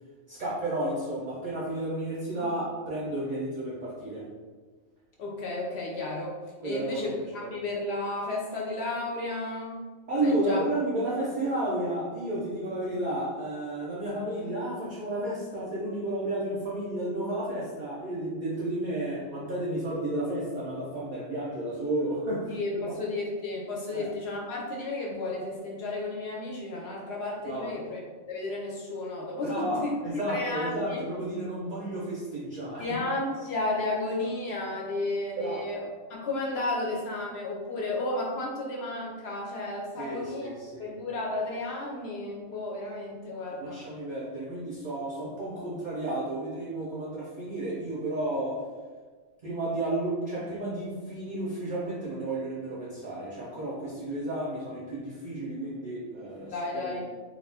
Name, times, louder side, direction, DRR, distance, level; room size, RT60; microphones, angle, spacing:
voice 1, 0.3-4.3 6.6-7.1 7.4-7.5 10.1-23.0 23.9-24.1 27.4-27.7 29.4-32.8 35.4-35.7 40.0-40.9 43.6-48.6 49.4-57.0, right 1 dB, 50° right, -7 dB, 0.5 m, -32 dB
voice 2, 5.2-6.4 6.6-9.8 10.2-10.6 22.5-28.0 28.3-29.9 30.3-31.0 32.8-40.5 40.8-43.8 56.5-57.0, left 2 dB, 65° left, -2 dB, 0.7 m, -33 dB
2.4 x 2.3 x 3.3 m, 1.4 s
omnidirectional pair, 1.4 m